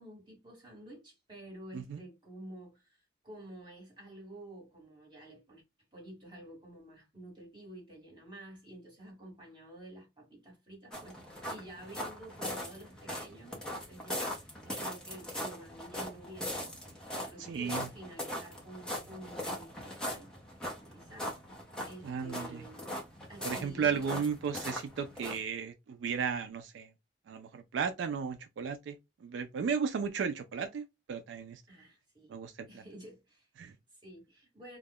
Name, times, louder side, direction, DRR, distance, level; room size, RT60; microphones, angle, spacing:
voice 1, 0.0-5.6 5.9-20.6 20.9-22.9 23.3-24.2 31.7-32.3 32.7-34.8, right 1 dB, 25° right, 1.3 m, -50 dB
sound 1, 10.9-25.4, equal, 5° left, 0.6 m, -40 dB
voice 2, 17.5-17.9 22.0-22.6 23.4-26.9 27.3-29.0 29.2-31.6 32.3-32.7 33.6-33.7, right 6 dB, 70° right, 0.3 m, -34 dB
2.3 x 2.1 x 3.4 m
head